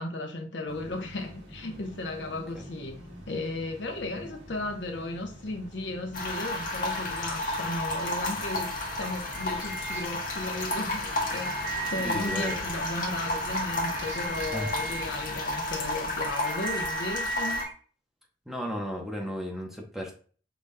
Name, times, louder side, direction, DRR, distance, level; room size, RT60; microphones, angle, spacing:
voice 1, 0.0-3.0 3.3-17.7, left 2 dB, 70° left, 0.8 m, -35 dB
sound 1, 0.7-15.4, equal, 75° right, 1.3 m, -47 dB
sound 2, 6.1-17.6, left 2 dB, 50° left, 1.2 m, -32 dB
sound 3, 8.9-10.5 10.9-11.0 11.3-12.8 13.3-17.7, right 3 dB, 50° right, 0.7 m, -37 dB
voice 2, 12.0-12.6 14.5-14.8 18.5-20.1, equal, ahead, 0.9 m, -34 dB
5.1 x 4.0 x 2.2 m
head